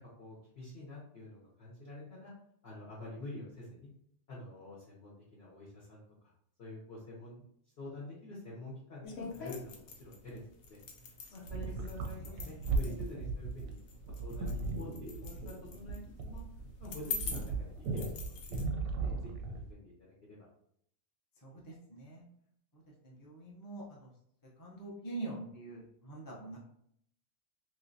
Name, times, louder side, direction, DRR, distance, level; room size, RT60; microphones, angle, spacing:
voice 1, 0.2-2.3 2.6-3.9 4.3-6.0 6.6-7.4 7.8-10.8 11.3-13.8 14.1-16.4 16.8-18.1 18.5-19.9 20.3-20.4, left 1 dB, 55° left, -6 dB, 1.0 m, -47 dB
sound 1, 9.0-18.6, left 5 dB, 80° left, 1.1 m, -45 dB
sound 2, 11.5-19.7, right 3 dB, 90° right, 1.0 m, -37 dB
voice 2, 21.4-22.2 23.0-24.1 24.6-26.6, right 2 dB, 20° left, -4 dB, 0.5 m, -44 dB
3.1 x 3.1 x 2.6 m, 0.70 s
omnidirectional pair, 1.4 m